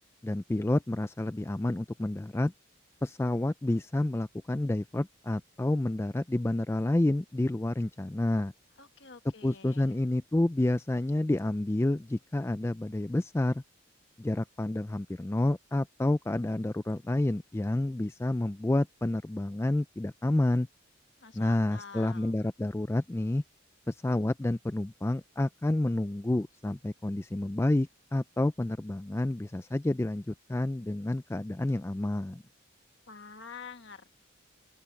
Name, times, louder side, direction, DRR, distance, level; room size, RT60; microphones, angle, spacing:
voice 1, 0.2-2.5 3.0-8.5 9.4-13.6 14.2-20.7 21.3-23.4 23.9-32.4, left 1 dB, 10° left, 0.3 m, -29 dB
voice 2, 8.8-10.0 21.2-22.4 33.1-34.2, left 5 dB, 55° left, 1.5 m, -48 dB
open air
head